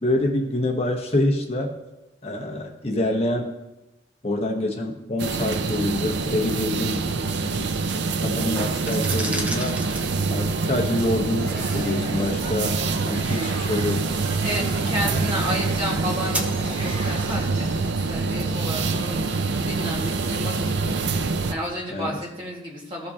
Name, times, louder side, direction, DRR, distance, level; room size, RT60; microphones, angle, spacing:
voice 1, 0.0-1.7 2.2-3.5 4.2-7.0 8.2-9.7 10.3-12.8 13.0-14.1 15.1-15.3 21.9-22.2, left 1 dB, 30° left, 1 dB, 0.9 m, -26 dB
sound 1, 5.2-21.5, right 4 dB, 65° right, 0.5 m, -25 dB
sound 2, 8.7-19.5, right 1 dB, 5° right, 0.6 m, -39 dB
sound 3, 11.4-17.8, right 1 dB, 85° right, 1.6 m, -38 dB
voice 2, 14.4-23.1, equal, 25° right, -3 dB, 1.8 m, -32 dB
14.5 x 5.3 x 2.8 m, 0.97 s
head